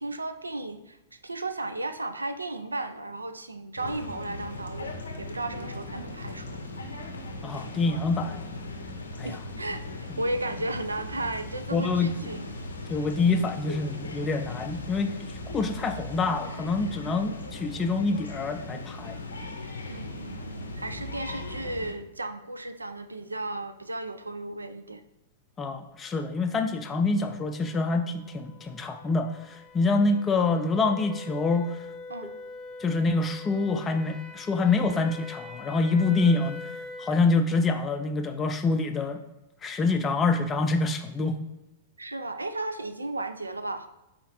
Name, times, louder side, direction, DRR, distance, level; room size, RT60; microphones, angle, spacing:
voice 1, 0.0-6.7 9.2-12.6 17.0-17.4 19.9-25.0 32.1-32.3 42.0-43.9, right 2 dB, 85° right, 10 dB, 0.3 m, -35 dB
sound 1, 3.8-21.9, left 2 dB, 80° left, 0.5 m, -38 dB
voice 2, 7.4-8.5 9.2-9.4 11.7-12.1 12.9-15.1 15.5-19.2 25.6-31.8 32.8-36.6 37.0-39.2 39.6-41.4, left 3 dB, 20° left, 6 dB, 0.3 m, -26 dB
sound 2, 27.3-37.2, left 3 dB, ahead, 0.8 m, -44 dB
4.2 x 3.8 x 2.9 m, 0.95 s
figure-of-eight pair, 100°, 0 cm